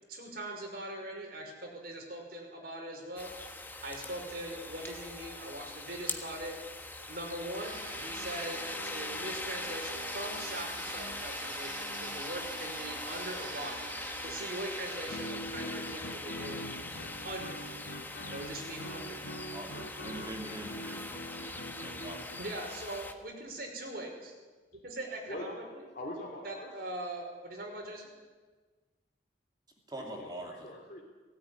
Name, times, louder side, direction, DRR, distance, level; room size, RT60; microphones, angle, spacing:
voice 1, 0.1-6.5 7.1-13.8 14.2-16.9 17.2-17.6 18.3-19.2 22.4-24.3 24.8-25.9 26.4-28.1, right 1 dB, 55° right, 1 dB, 5.3 m, -41 dB
sound 1, 3.2-23.1, left 2 dB, 10° left, 1.4 m, -41 dB
sound 2, 7.6-15.3, right 6 dB, 85° right, 1.0 m, -46 dB
Guitar, 15.1-22.5, equal, 85° left, 1.8 m, -44 dB
voice 2, 19.5-22.4 29.9-30.5, right 1 dB, 20° right, 1 dB, 2.7 m, -44 dB
voice 3, 25.9-26.7 29.9-31.0, left 1 dB, 45° left, -2 dB, 3.2 m, -43 dB
17.5 x 17.5 x 9.9 m, 1.4 s
head